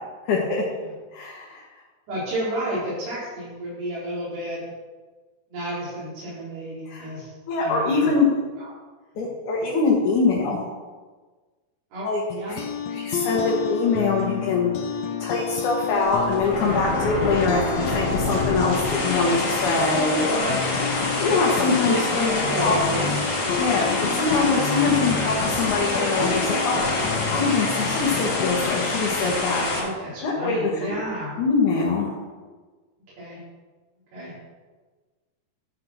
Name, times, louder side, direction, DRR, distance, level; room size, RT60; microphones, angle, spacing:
voice 1, 0.3-0.6 1.1-1.6 6.9-7.1 7.5-8.3 9.2-10.6 12.0-12.2 12.5-12.6 12.9-14.7 15.2-20.6 21.2-22.8 23.6-29.9 30.2-30.9 31.4-32.1, left 4 dB, 60° left, -4 dB, 2.6 m, -23 dB
voice 2, 2.1-4.6 5.5-8.1 8.6-8.7 11.9-12.1 12.3-12.6 13.2-13.4 17.3-17.4 21.4-23.1 29.7-31.4 33.2-33.4 34.1-34.3, right 1 dB, 90° right, -11 dB, 6.3 m, -31 dB
sound 1, 12.3-29.2, left 7 dB, 90° left, 1.6 m, -30 dB
sound 2, 15.9-29.8, left 2 dB, 40° left, 3.1 m, -26 dB
12.5 x 6.0 x 6.5 m, 1.4 s
omnidirectional pair, 4.7 m